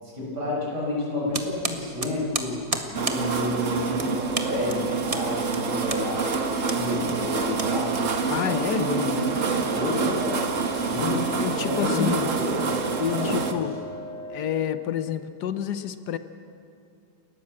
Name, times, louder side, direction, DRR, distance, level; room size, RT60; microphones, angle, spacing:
voice 1, 0.0-2.6 2.9-7.9 8.2-11.3 11.6-12.8 13.1-13.8, left 2 dB, 75° right, -4 dB, 7.2 m, -30 dB
sound 1, 1.3-8.5, right 3 dB, 25° right, 1.2 m, -33 dB
sound 2, 2.9-13.5, right 5 dB, 50° right, 1.6 m, -27 dB
sound 3, 5.9-14.6, left 2 dB, 10° left, 4.1 m, -39 dB
voice 2, 8.3-8.9 11.4-12.3 13.0-13.7 14.3-16.2, left 10 dB, 75° left, 11 dB, 1.4 m, -28 dB
28.5 x 13.0 x 7.6 m, 2.6 s
omnidirectional pair, 1.8 m